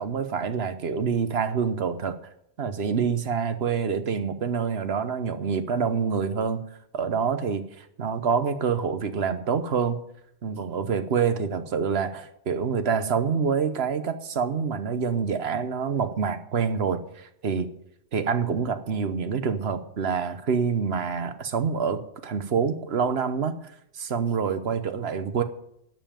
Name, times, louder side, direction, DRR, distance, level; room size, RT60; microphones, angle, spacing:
voice 1, 0.0-2.2 2.6-6.6 6.9-10.0 10.4-17.7 18.1-23.6 23.9-25.4, right 6 dB, 70° right, 10 dB, 1.2 m, -26 dB
12.0 x 5.6 x 8.8 m, 0.73 s
omnidirectional pair, 1.1 m